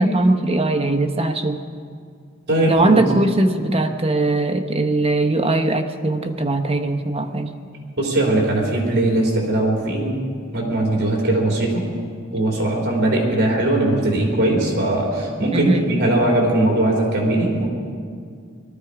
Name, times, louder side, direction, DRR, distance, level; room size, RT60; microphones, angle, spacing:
voice 1, 0.0-1.6 2.7-7.5 15.5-15.9, right 2 dB, 30° right, 5 dB, 0.9 m, -20 dB
voice 2, 2.5-3.0 8.0-10.2 10.5-11.9 12.3-17.7, right 1 dB, 55° right, -2 dB, 3.7 m, -20 dB
19.5 x 13.0 x 4.9 m, 2.1 s
head